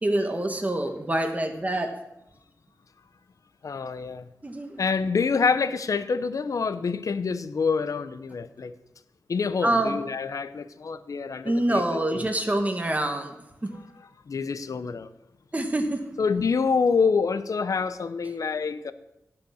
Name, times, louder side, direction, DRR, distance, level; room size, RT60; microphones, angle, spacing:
voice 1, 0.0-1.9 4.4-4.8 9.6-10.0 11.4-13.3 13.6-13.7 15.5-16.0, right 1 dB, 25° right, 5 dB, 1.4 m, -26 dB
voice 2, 3.6-4.3 4.8-8.7 9.3-12.2 14.3-15.1 16.2-18.9, left 5 dB, 60° left, 13 dB, 0.7 m, -26 dB
17.0 x 5.8 x 6.4 m, 0.89 s
cardioid pair, 75°, 6 cm